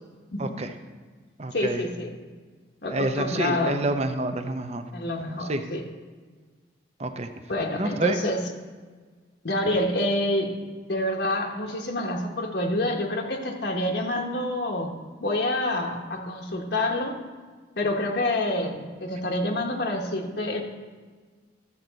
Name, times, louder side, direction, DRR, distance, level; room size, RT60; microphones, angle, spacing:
voice 1, 0.4-0.7 1.4-1.8 2.9-4.8 5.4-5.6 7.0-7.3 7.7-8.2, right 2 dB, 35° right, 7 dB, 0.7 m, -28 dB
voice 2, 1.5-2.1 2.8-3.8 4.9-5.9 7.5-8.4 9.4-10.6 10.9-14.9 15.2-17.1 17.8-20.6, left 1 dB, 60° left, 1 dB, 1.1 m, -27 dB
12.5 x 7.6 x 4.0 m, 1.4 s
head